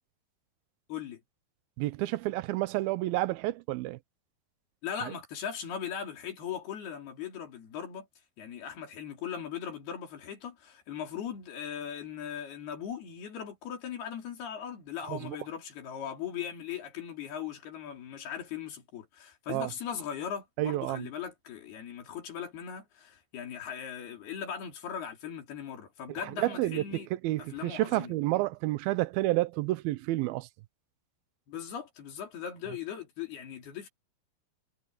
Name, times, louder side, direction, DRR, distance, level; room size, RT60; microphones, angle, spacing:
voice 1, 0.9-1.2 4.8-8.1 8.4-27.1 27.4-28.1 31.5-33.9, left 8 dB, 90° left, 5.5 m, -39 dB
voice 2, 1.8-4.0 15.1-15.4 19.5-19.7 20.6-21.1 26.2-30.5, right 17 dB, 85° right, 2.5 m, -30 dB
omnidirectional pair, 4.4 m